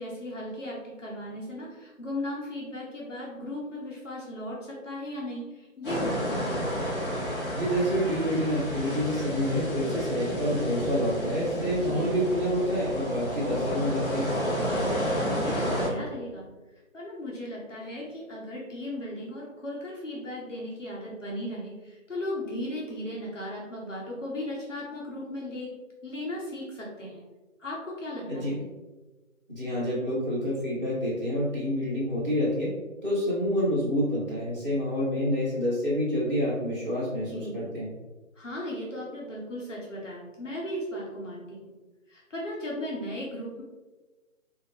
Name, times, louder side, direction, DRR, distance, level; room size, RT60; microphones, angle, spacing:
voice 1, 0.0-6.7 11.7-12.1 14.5-16.5 16.9-25.7 26.0-27.2 27.6-28.6 37.3-37.6 38.3-41.7 42.1-43.6, left 1 dB, 65° left, -4 dB, 1.2 m, -36 dB
sound 1, 5.8-15.9, equal, 40° left, 1.5 m, -31 dB
voice 2, 7.5-14.3 28.3-28.5 29.5-32.7 33.0-37.9, equal, 10° right, -19 dB, 0.9 m, -28 dB
4.8 x 2.7 x 3.2 m, 1.2 s
figure-of-eight pair, 155°, 40 cm